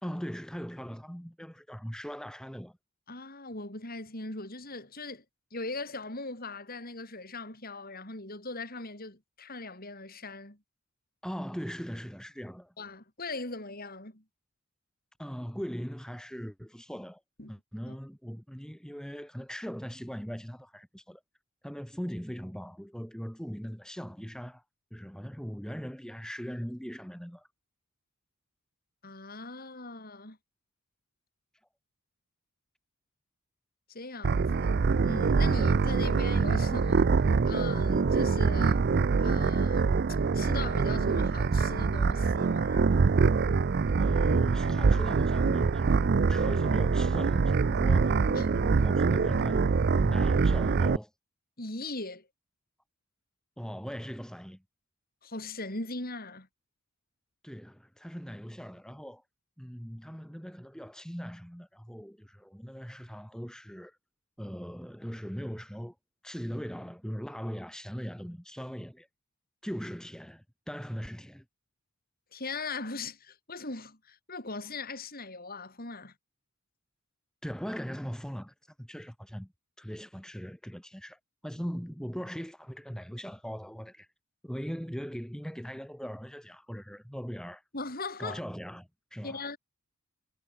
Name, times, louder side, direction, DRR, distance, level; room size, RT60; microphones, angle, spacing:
voice 1, 0.0-2.8 11.2-12.7 15.2-17.2 17.5-21.2 21.6-24.6 24.9-27.5 44.0-48.2 48.5-51.1 53.6-54.6 57.4-59.2 59.6-64.0 64.4-66.0 66.2-69.1 69.6-71.4 77.4-79.5 79.8-84.1 84.4-87.6 88.2-89.4, equal, 5° left, 3.6 m, -40 dB
voice 2, 3.1-5.2 5.5-10.6 12.8-14.2 17.4-17.5 17.9-18.0 29.0-30.4 33.9-34.7 35.0-37.1 37.4-38.8 39.2-39.9 40.3-42.9 48.3-48.6 51.6-52.3 55.2-56.5 72.3-76.1 87.7-88.4 89.2-89.6, left 3 dB, 40° left, 6.9 m, -39 dB
sound 1, 34.2-51.0, right 4 dB, 45° right, 0.4 m, -25 dB
head